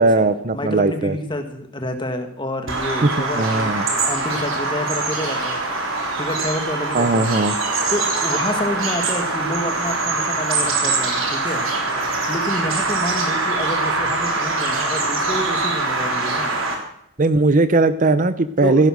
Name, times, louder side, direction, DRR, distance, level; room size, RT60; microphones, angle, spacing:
voice 1, 0.0-1.1 3.0-3.9 6.9-7.6 17.2-18.9, right 2 dB, 40° right, 13 dB, 0.7 m, -18 dB
voice 2, 0.5-5.6 6.2-7.3 7.9-11.6 12.0-16.6 18.6-18.9, left 1 dB, 20° left, 6 dB, 1.7 m, -28 dB
Bird vocalization bird call bird song, 2.7-16.7, right 3 dB, 70° right, 3.6 m, -23 dB
16.0 x 11.5 x 6.3 m, 0.74 s
head